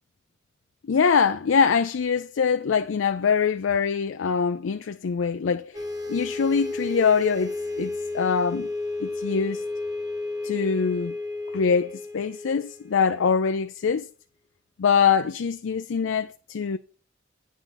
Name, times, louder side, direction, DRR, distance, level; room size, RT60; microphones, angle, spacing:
voice 1, 0.9-8.7 9.0-9.6 10.4-11.2 11.5-14.1 14.8-16.8, left 6 dB, 90° left, 0.4 m, -24 dB
sound 1, 5.7-13.5, left 2 dB, 20° right, 1.2 m, -33 dB
9.4 x 6.2 x 3.9 m
head